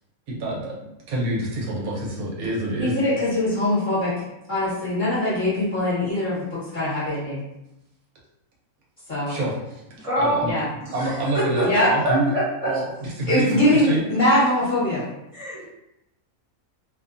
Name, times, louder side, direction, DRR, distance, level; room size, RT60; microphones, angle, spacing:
voice 1, 0.3-2.9 9.3-9.8 10.2-10.5 10.9-12.3 12.6-14.0, right 1 dB, 80° right, -3 dB, 1.2 m, -27 dB
voice 2, 2.8-4.1 4.5-7.4 9.1-9.4 10.4-10.7 11.6-11.9 13.3-15.0, left 1 dB, 40° left, -10 dB, 0.9 m, -22 dB
voice 3, 10.0-10.5 10.9-12.7 15.3-15.7, right 1 dB, 30° right, -8 dB, 0.7 m, -25 dB
2.6 x 2.2 x 2.5 m, 0.90 s
omnidirectional pair, 1.5 m